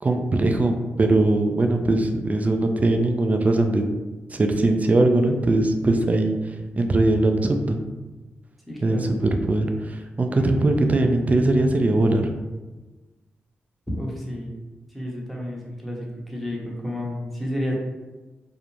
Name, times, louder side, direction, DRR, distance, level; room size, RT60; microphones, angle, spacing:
voice 1, 0.0-3.8 4.3-7.8 8.8-12.2, right 2 dB, 35° right, 5 dB, 0.3 m, -21 dB
voice 2, 8.7-9.1 10.3-10.4 13.9-14.5 14.9-17.8, equal, ahead, -3 dB, 0.8 m, -31 dB
2.5 x 2.0 x 3.0 m, 1.2 s
cardioid pair, 55°, 4 cm